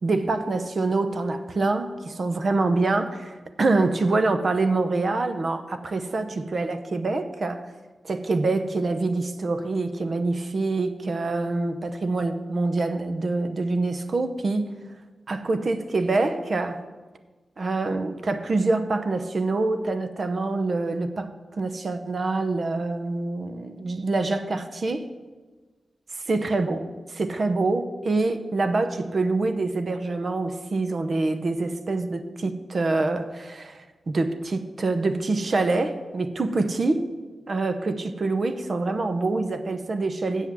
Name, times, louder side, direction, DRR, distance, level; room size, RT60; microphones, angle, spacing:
voice 1, 0.0-7.6 8.0-14.7 15.3-16.8 17.6-25.1 26.3-37.1 37.5-40.5, right 3 dB, 50° right, 9 dB, 0.7 m, -25 dB
8.1 x 7.2 x 7.4 m, 1.3 s
wide cardioid pair, 125°, 0 cm